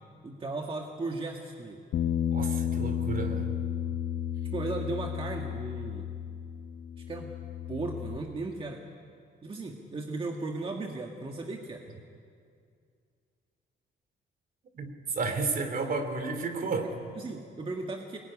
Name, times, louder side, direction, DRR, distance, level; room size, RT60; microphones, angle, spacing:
voice 1, 0.2-1.8 4.5-6.1 7.1-7.3 7.7-8.8 9.4-11.8 16.8-18.2, right 3 dB, 30° right, 1 dB, 1.8 m, -36 dB
Bass guitar, 1.9-8.2, left 9 dB, 75° left, 1.1 m, -32 dB
voice 2, 2.3-3.5 14.7-16.9, right 4 dB, 50° right, 7 dB, 3.1 m, -32 dB
24.5 x 21.0 x 9.9 m, 2.3 s
cardioid pair, 130°, 18 cm